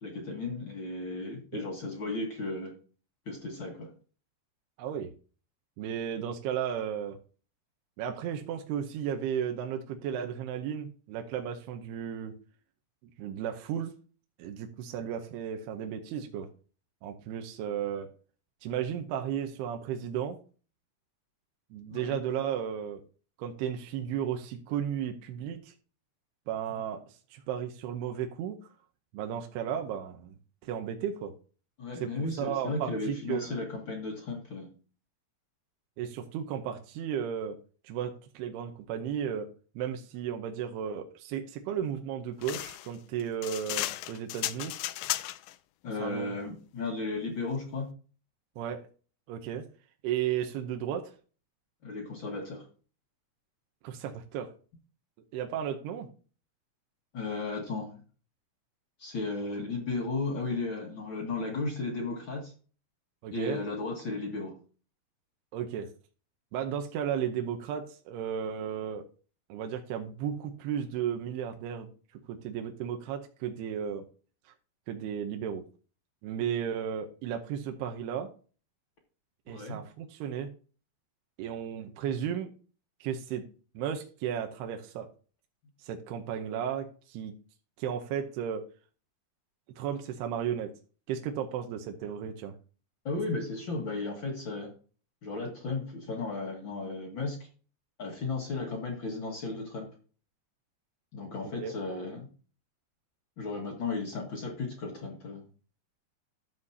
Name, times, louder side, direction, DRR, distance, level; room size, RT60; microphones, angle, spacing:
voice 1, 0.0-2.7 3.2-3.9 21.9-22.2 31.8-34.7 45.8-47.9 51.8-52.6 57.1-57.9 59.0-62.5 63.3-64.5 79.5-79.8 93.0-94.7 95.2-97.4 98.0-99.9 101.1-102.3 103.4-105.4, left 3 dB, 60° left, 0 dB, 1.3 m, -35 dB
voice 2, 4.8-5.1 5.8-7.2 8.0-12.3 13.2-13.9 14.4-16.5 17.0-18.1 18.6-20.4 21.7-23.0 23.4-25.7 26.5-28.6 29.1-30.3 30.6-31.3 32.0-33.6 36.0-37.6 37.8-39.5 39.8-44.7 46.0-46.3 48.6-48.8 49.3-49.7 50.0-51.1 53.8-54.5 55.3-56.1 63.2-63.6 65.5-65.9 66.5-69.1 69.5-71.9 72.3-74.0 74.9-75.6 76.2-78.3 79.5-80.5 81.4-82.5 83.0-83.4 83.7-85.1 85.8-87.3 87.8-88.6 89.8-90.7 91.1-92.5 101.4-101.7, right 9 dB, 80° right, 5 dB, 2.8 m, -34 dB
sound 1, 42.4-45.6, left 15 dB, 85° left, 2.1 m, -34 dB
12.5 x 7.5 x 2.8 m, 0.37 s
omnidirectional pair, 4.8 m